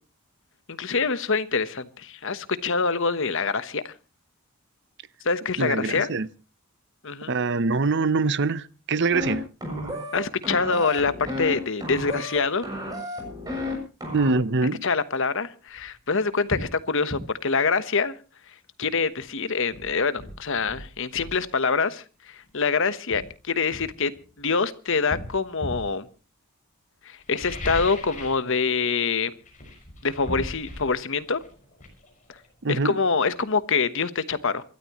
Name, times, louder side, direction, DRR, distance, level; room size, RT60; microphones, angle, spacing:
voice 1, 0.7-3.9 5.2-6.1 7.0-7.4 10.1-12.6 14.8-18.1 18.8-24.1 24.4-26.1 27.0-29.3 30.0-31.4 32.7-34.6, left 4 dB, 60° left, 1.1 m, -25 dB
voice 2, 5.6-6.3 7.3-9.4 14.1-14.8 32.6-32.9, right 3 dB, 55° right, 0.7 m, -24 dB
sound 1, 9.1-9.3 9.6-10.2 10.4-11.5 11.8-12.4 12.6-13.7 14.0-14.3, left 1 dB, 15° right, 7.1 m, -32 dB
sound 2, 15.8-15.9 16.5-16.7 17.1-17.3 19.2-19.3 19.7-21.4 22.4-22.6 23.1-24.5 25.1-25.9 27.2-28.5 28.7-29.1 29.4-33.0 33.3-33.4, left 1 dB, 35° left, 5.9 m, -37 dB
27.5 x 13.0 x 3.1 m
head